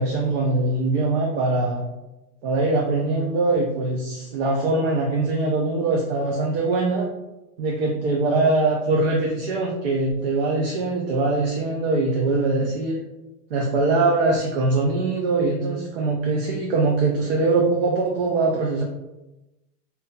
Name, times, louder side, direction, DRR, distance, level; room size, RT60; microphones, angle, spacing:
voice 1, 0.0-1.9 2.4-7.1 7.6-13.0 13.5-18.8, right 3 dB, 40° right, -1 dB, 0.5 m, -22 dB
5.1 x 2.8 x 2.2 m, 0.98 s
supercardioid pair, 160°, 48 cm